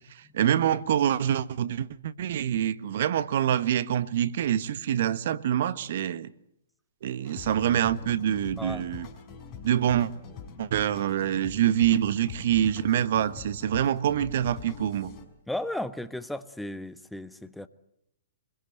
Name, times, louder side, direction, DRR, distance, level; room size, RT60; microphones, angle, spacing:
voice 1, 0.3-6.3 7.0-9.1 9.6-10.1 10.6-15.1, right 10 dB, 55° right, 1.4 m, -25 dB
sound 1, 7.3-15.3, left 6 dB, 30° left, 5.0 m, -43 dB
voice 2, 15.5-17.7, left 1 dB, 5° left, 1.3 m, -35 dB
25.0 x 22.0 x 7.9 m
figure-of-eight pair, 120°, 0 cm